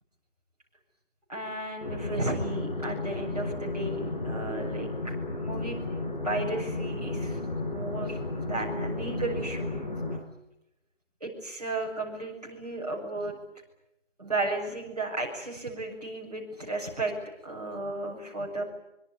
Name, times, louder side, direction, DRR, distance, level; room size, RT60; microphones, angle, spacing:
voice 1, 1.3-5.8 6.2-9.7 11.2-13.4 14.2-17.1 17.4-18.6, right 2 dB, 30° right, -1 dB, 7.3 m, -34 dB
sound 1, 1.8-10.2, left 2 dB, 35° left, 4.5 m, -33 dB
24.5 x 24.5 x 9.8 m, 0.84 s
figure-of-eight pair, 180°, 37 cm